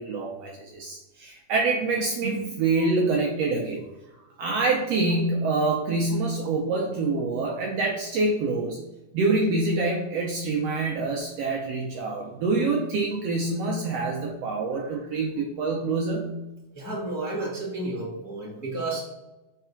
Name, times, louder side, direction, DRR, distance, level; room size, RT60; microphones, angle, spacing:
voice 1, 0.0-3.8 4.4-8.8 9.1-16.3, right 3 dB, 70° right, 0 dB, 1.7 m, -26 dB
voice 2, 16.7-19.0, right 2 dB, 10° left, -7 dB, 1.3 m, -31 dB
4.7 x 4.6 x 5.6 m, 0.98 s
omnidirectional pair, 3.4 m